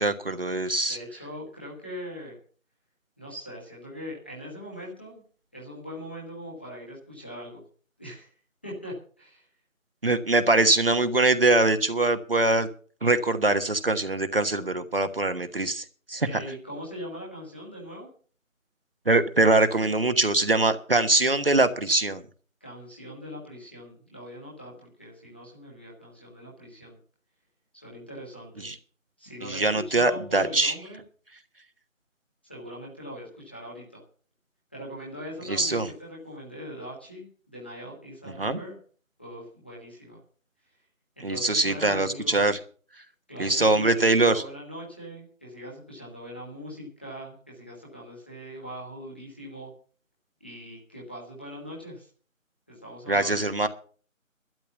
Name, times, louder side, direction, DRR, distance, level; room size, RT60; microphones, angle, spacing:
voice 1, 0.0-1.0 10.0-12.7 13.0-16.3 19.1-22.2 28.6-28.8 29.4-30.7 35.5-35.9 38.4-38.6 41.2-42.6 43.4-44.4 53.1-53.7, right 2 dB, 45° right, 9 dB, 1.3 m, -23 dB
voice 2, 0.9-2.4 3.2-5.2 5.5-7.6 8.0-8.3 8.6-9.5 16.2-18.1 22.6-27.0 27.7-28.7 29.2-31.0 32.4-34.0 34.7-38.8 39.2-40.2 41.2-42.4 43.3-49.7 50.4-52.1 52.7-53.4, equal, 10° left, -5 dB, 1.4 m, -41 dB
12.5 x 10.5 x 6.9 m, 0.42 s
figure-of-eight pair, 170°, 40 cm